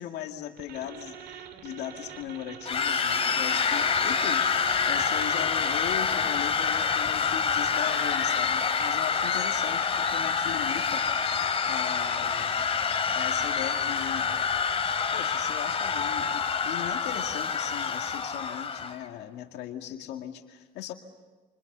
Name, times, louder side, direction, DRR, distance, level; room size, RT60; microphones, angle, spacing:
voice 1, 0.0-11.1 11.3-12.6 13.1-14.3 15.1-20.9, left 11 dB, 85° left, 5 dB, 2.0 m, -38 dB
sound 1, 0.6-5.9, right 8 dB, 75° right, 2.6 m, -45 dB
sound 2, 2.7-19.0, left 6 dB, 35° left, 2.8 m, -27 dB
28.5 x 26.0 x 6.8 m, 1.3 s
cardioid pair, 110°, 17 cm